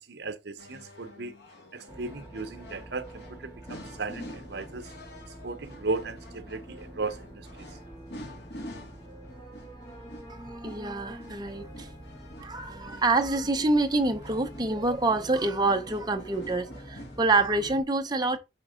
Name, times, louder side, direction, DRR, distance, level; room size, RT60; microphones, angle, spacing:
voice 1, 0.0-1.3 1.7-4.9 5.4-7.7, right 3 dB, 65° right, 0.8 m, -36 dB
sound 1, 0.6-17.2, left 1 dB, 65° left, 1.6 m, -48 dB
sound 2, 1.9-17.8, right 1 dB, 25° left, 2.1 m, -46 dB
voice 2, 10.3-11.9 12.4-18.4, right 2 dB, 25° right, 0.7 m, -27 dB
5.4 x 3.6 x 4.9 m
head